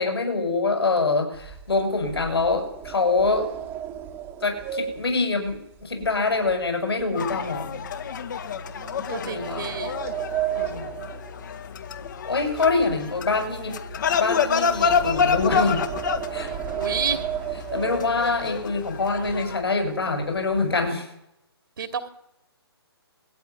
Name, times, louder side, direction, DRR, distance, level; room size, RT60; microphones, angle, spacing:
voice 1, 0.0-3.5 4.4-7.8 9.2-9.9 10.6-11.1 12.2-13.8 14.2-15.8 16.3-16.5 17.7-21.1, left 3 dB, 65° left, 5 dB, 6.9 m, -25 dB
sound 1, 1.3-6.7 7.0-7.3 7.8-8.0 8.8-12.1 12.4-18.6 19.2-19.3 19.6-19.9 20.2-20.9, right 10 dB, 15° right, 1.9 m, -34 dB
sound 2, 7.1-19.6, left 6 dB, 45° left, 2.2 m, -28 dB
voice 2, 8.8-9.9 16.7-17.2 21.8-22.1, right 6 dB, 55° right, 8 dB, 2.8 m, -30 dB
21.0 x 15.0 x 9.8 m, 0.82 s
figure-of-eight pair, 135°, 14 cm